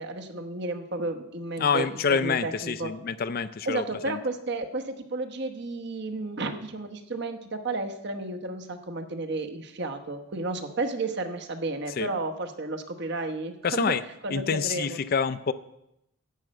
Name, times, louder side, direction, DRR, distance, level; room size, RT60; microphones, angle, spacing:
voice 1, 0.0-2.9 3.6-14.0 14.2-15.0, right 2 dB, 55° right, 5 dB, 1.0 m, -32 dB
voice 2, 1.6-4.2 12.0-12.1 13.6-14.0 14.3-15.5, left 6 dB, 45° left, 14 dB, 0.4 m, -27 dB
10.5 x 6.4 x 7.6 m, 0.82 s
head